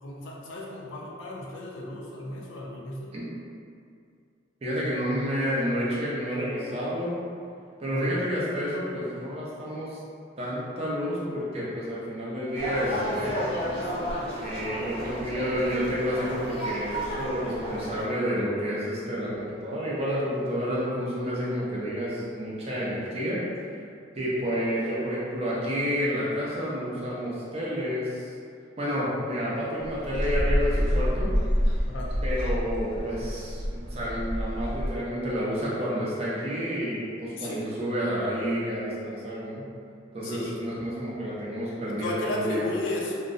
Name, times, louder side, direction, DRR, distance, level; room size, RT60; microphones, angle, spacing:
voice 1, 0.0-3.1 7.9-8.1 31.9-32.1 37.4-37.7 40.2-40.5 41.8-43.1, left 2 dB, 80° left, -2 dB, 0.4 m, -34 dB
voice 2, 4.6-7.1 7.8-10.0 10.4-13.6 14.4-23.4 24.2-28.3 28.8-31.3 32.2-39.7 40.1-42.6, equal, 30° right, -7 dB, 0.5 m, -30 dB
sound 1, 12.5-18.0, equal, 30° left, 0.5 m, -32 dB
sound 2, 29.8-35.0, equal, 75° right, 0.7 m, -27 dB
2.6 x 2.0 x 2.5 m, 2.3 s
head